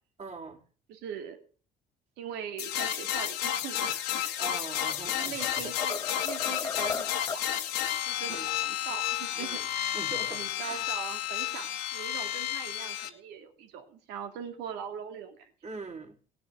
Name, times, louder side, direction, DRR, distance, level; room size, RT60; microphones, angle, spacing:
voice 1, 0.2-0.6 4.4-5.7 8.3-8.5 9.4-9.6 9.9-10.9 15.6-16.2, right 3 dB, 40° right, 2 dB, 3.7 m, -42 dB
voice 2, 0.9-1.4 2.2-4.4 5.1-7.6 8.0-10.0 10.2-15.5, right 8 dB, 85° right, 6 dB, 2.7 m, -41 dB
sound 1, 2.6-13.1, left 11 dB, 90° left, 1.7 m, -32 dB
sound 2, 4.6-5.0 5.4-7.5, left 5 dB, 20° left, 0.6 m, -36 dB
18.5 x 6.3 x 8.3 m, 0.41 s
cardioid pair, 95°, 17 cm